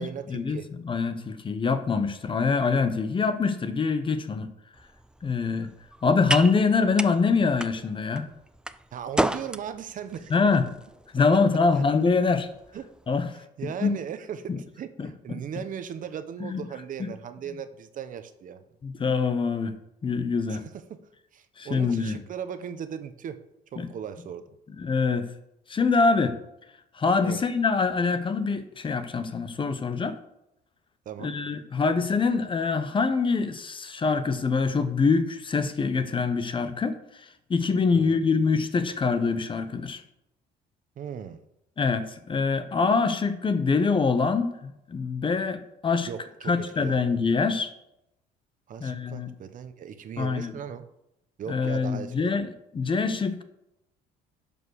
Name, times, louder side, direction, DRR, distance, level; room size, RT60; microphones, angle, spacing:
voice 1, 0.0-0.7 8.9-10.3 11.8-11.9 12.7-12.9 13.3-18.6 20.5-21.0 21.3-23.4 23.7-24.6 27.2-27.4 31.0-31.4 37.9-38.2 41.0-41.4 46.1-47.0 48.7-50.9 51.4-52.3, right 8 dB, 50° right, 10 dB, 1.0 m, -38 dB
voice 2, 0.8-4.5 5.2-5.7 6.0-8.2 10.3-10.6 11.1-12.5 13.1-13.3 13.8-14.0 14.5-14.6 16.4-16.6 18.8-19.7 20.0-20.6 21.6-22.2 23.8-23.9 24.8-25.3 25.7-26.4 27.0-30.2 31.2-37.0 37.5-40.0 41.8-46.1 46.5-47.7 48.8-49.3 50.2-50.5 51.5-52.5 52.7-53.4, left 4 dB, 30° left, 10 dB, 1.0 m, -24 dB
sound 1, 4.7-13.1, right 1 dB, 5° right, 0.4 m, -35 dB
11.0 x 5.3 x 6.5 m, 0.83 s
cardioid pair, 110°, 17 cm